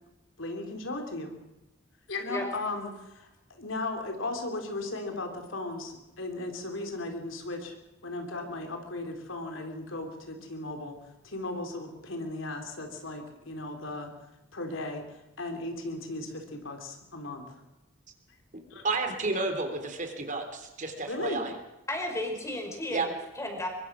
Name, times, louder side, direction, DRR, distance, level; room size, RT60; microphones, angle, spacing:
voice 1, 0.4-1.4 2.1-7.8 8.0-11.0 11.2-14.1 14.5-15.1 15.4-17.6 18.7-18.8 21.1-21.4, left 2 dB, 80° left, 4 dB, 3.8 m, -36 dB
voice 2, 18.8-21.5 22.9-23.1, right 3 dB, 40° right, 5 dB, 3.5 m, -31 dB
voice 3, 21.9-23.7, left 1 dB, 15° left, 3 dB, 5.3 m, -33 dB
23.5 x 23.0 x 6.3 m, 1.0 s
head